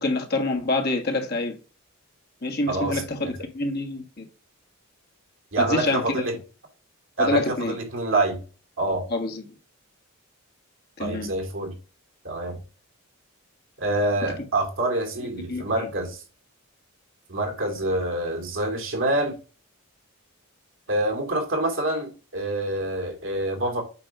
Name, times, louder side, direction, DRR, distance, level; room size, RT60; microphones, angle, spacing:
voice 1, 0.0-1.5 2.4-4.2 5.6-6.2 7.2-7.7 9.1-9.4 11.0-11.3 15.5-15.7, left 2 dB, 45° left, 1.6 m, -26 dB
voice 2, 2.7-3.0 5.5-6.4 7.2-8.4 8.8-9.0 11.0-11.7 12.2-12.6 13.8-16.2 17.3-19.4 20.9-23.8, right 2 dB, 65° right, 2.6 m, -26 dB
8.4 x 3.2 x 5.9 m
head